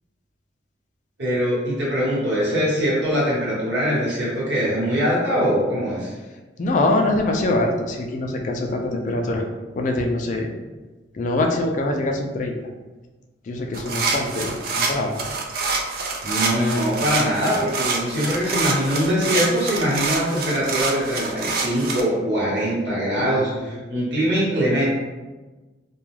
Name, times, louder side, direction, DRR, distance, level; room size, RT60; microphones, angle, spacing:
voice 1, 1.2-6.1 16.2-24.8, equal, 70° right, -8 dB, 1.2 m, -22 dB
voice 2, 6.6-9.4 9.8-10.5 11.1-12.5 13.5-15.1 23.2-23.7, left 2 dB, 45° left, 2 dB, 0.3 m, -24 dB
sound 1, 13.7-22.0, right 4 dB, 55° right, 0.4 m, -26 dB
2.3 x 2.3 x 3.1 m, 1.2 s
head